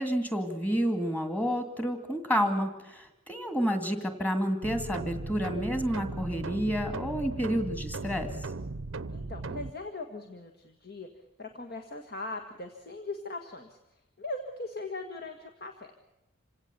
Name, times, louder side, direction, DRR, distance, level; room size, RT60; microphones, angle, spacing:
voice 1, 0.0-8.4, equal, 10° left, 7 dB, 2.1 m, -30 dB
sound 1, 4.6-9.7, right 3 dB, 65° right, 0.8 m, -37 dB
voice 2, 9.1-11.1 11.4-13.8 14.2-16.0, left 2 dB, 45° left, 4 dB, 1.7 m, -40 dB
27.0 x 17.5 x 7.0 m, 0.93 s
head